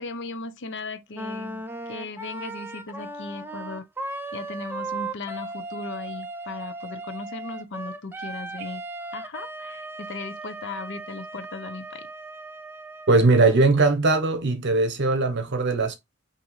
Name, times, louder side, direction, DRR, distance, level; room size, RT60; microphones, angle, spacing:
voice 1, 0.0-1.6 1.9-3.9 4.3-8.8 9.1-12.1 13.4-13.5, left 3 dB, 60° left, 0.7 m, -37 dB
Wind instrument woodwind instrument, 1.1-13.6, right 2 dB, 10° right, 0.5 m, -37 dB
voice 2, 13.1-16.0, right 3 dB, 55° right, 0.9 m, -20 dB
6.1 x 2.8 x 3.1 m
head